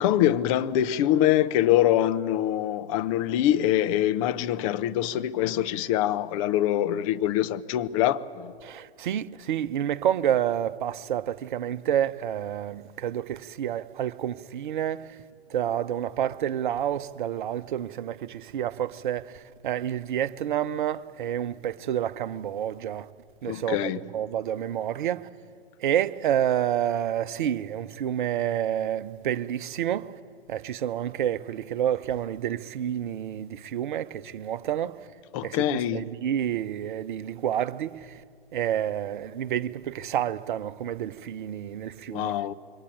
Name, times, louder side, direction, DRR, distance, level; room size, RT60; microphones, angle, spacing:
voice 1, 0.0-8.5 23.5-24.0 35.3-36.1 42.1-42.5, left 12 dB, 30° left, 0.9 m, -24 dB
voice 2, 8.6-15.1 15.5-23.1 23.4-25.2 25.8-30.1 30.5-35.0 35.4-38.2 38.5-42.3, right 10 dB, 50° right, 0.9 m, -29 dB
26.5 x 22.5 x 9.1 m
figure-of-eight pair, 110°, 31 cm